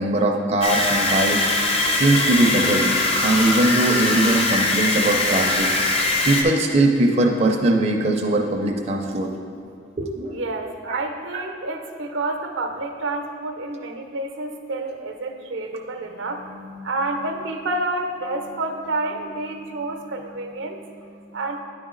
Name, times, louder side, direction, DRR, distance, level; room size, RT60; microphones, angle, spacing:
voice 1, 0.0-2.9 3.2-5.7 6.0-9.3 10.0-10.4 10.9-11.0 11.3-11.4, right 2 dB, 35° right, 1 dB, 0.4 m, -21 dB
sound 1, 0.6-6.4, left 2 dB, 30° left, 0.5 m, -21 dB
voice 2, 10.3-21.6, right 2 dB, 85° right, 4 dB, 0.6 m, -29 dB
9.7 x 3.9 x 3.8 m, 2.4 s
head